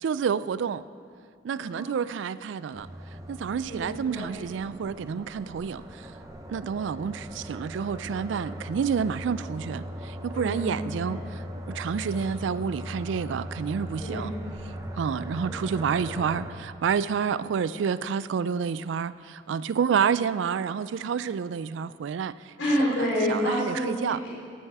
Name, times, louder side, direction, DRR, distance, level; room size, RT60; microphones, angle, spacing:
voice 1, 0.0-0.8 1.4-2.9 3.3-6.0 6.5-14.3 15.0-22.3 23.3-24.2, right 6 dB, 75° right, 16 dB, 0.3 m, -29 dB
voice 2, 1.5-2.0 3.6-4.3 10.3-11.2 12.1-12.2 14.0-14.2 15.4-15.8 16.0-16.2 19.7-19.9 22.6-24.3, equal, 70° left, -7 dB, 3.3 m, -29 dB
sound 1, 2.7-16.5, equal, 15° right, 0.7 m, -39 dB
14.0 x 8.7 x 4.7 m, 2.2 s
head